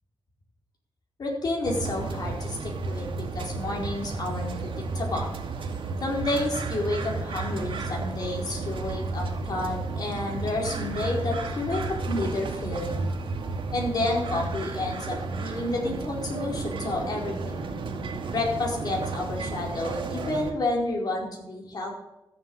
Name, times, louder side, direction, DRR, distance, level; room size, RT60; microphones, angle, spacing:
voice 1, 1.2-5.3 6.0-11.8 12.1-13.1 13.7-17.7 18.3-21.9, left 2 dB, 50° left, -1 dB, 4.7 m, -30 dB
sound 1, 1.6-20.5, right 3 dB, 80° right, 2.3 m, -32 dB
14.0 x 7.5 x 8.7 m, 0.92 s
wide cardioid pair, 135°, 9 cm